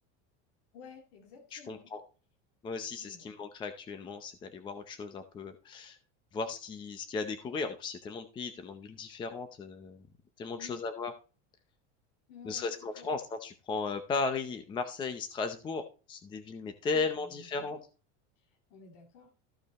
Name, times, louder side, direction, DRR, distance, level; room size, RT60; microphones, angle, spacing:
voice 1, 0.7-1.9 3.0-3.3 10.6-10.8 12.3-13.1 16.9-17.0 17.6-17.8 18.7-19.3, left 6 dB, 55° left, 2 dB, 2.4 m, -52 dB
voice 2, 1.5-2.0 2.6-6.0 6.3-10.0 10.4-11.1 12.4-17.8, left 4 dB, 15° left, 8 dB, 0.6 m, -36 dB
14.0 x 5.4 x 4.2 m, 0.34 s
cardioid pair, 180°, 33 cm